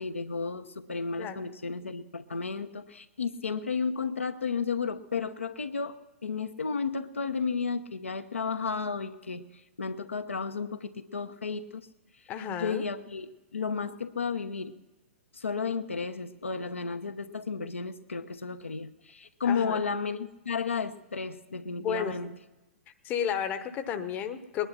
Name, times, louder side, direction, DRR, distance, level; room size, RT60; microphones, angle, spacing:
voice 1, 0.0-6.0 6.2-9.5 9.8-11.9 12.6-14.7 15.3-22.3, left 5 dB, 75° left, 7 dB, 0.9 m, -33 dB
voice 2, 12.3-12.8 19.4-19.8 21.8-22.2 23.0-24.7, left 8 dB, 25° left, 9 dB, 0.9 m, -32 dB
20.5 x 10.5 x 5.8 m, 1.1 s
figure-of-eight pair, 115°, 7 cm